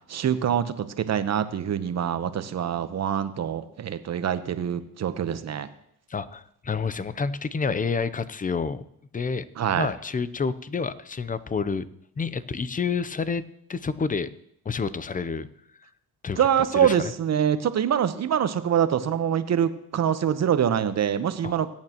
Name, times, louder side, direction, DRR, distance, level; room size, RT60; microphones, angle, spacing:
voice 1, 0.1-5.7 9.6-9.9 16.4-21.7, right 9 dB, 50° right, 11 dB, 1.0 m, -25 dB
voice 2, 6.1-8.8 9.1-9.4 9.7-11.9 12.2-13.4 13.7-14.3 14.6-15.5 16.2-16.5 16.7-17.1 21.4-21.5, left 5 dB, 25° left, 16 dB, 0.7 m, -28 dB
21.0 x 8.8 x 3.0 m, 0.72 s
supercardioid pair, 80°, 35 cm